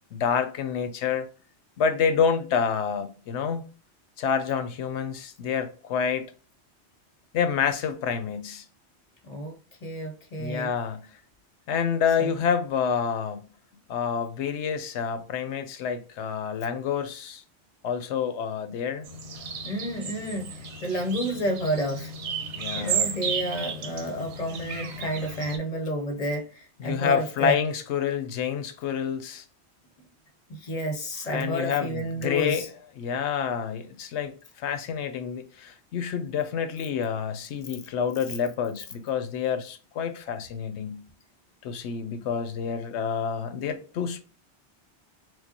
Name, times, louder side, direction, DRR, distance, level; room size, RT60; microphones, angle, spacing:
voice 1, 0.1-1.3 1.8-3.6 4.2-6.3 7.3-8.6 10.4-11.0 11.7-13.4 13.9-17.4 17.8-19.1 22.6-23.1 26.8-29.4 31.3-32.7 33.0-34.3 34.6-41.0 41.6-44.2, left 7 dB, 85° left, 0.9 m, -28 dB
voice 2, 9.2-9.5 9.8-10.7 12.2-12.3 19.6-22.1 22.7-26.5 26.8-27.6 30.5-32.7, equal, 40° left, 0.7 m, -30 dB
sound 1, 19.0-25.6, right 6 dB, 85° right, 1.0 m, -33 dB
4.6 x 2.0 x 2.7 m
omnidirectional pair, 1.1 m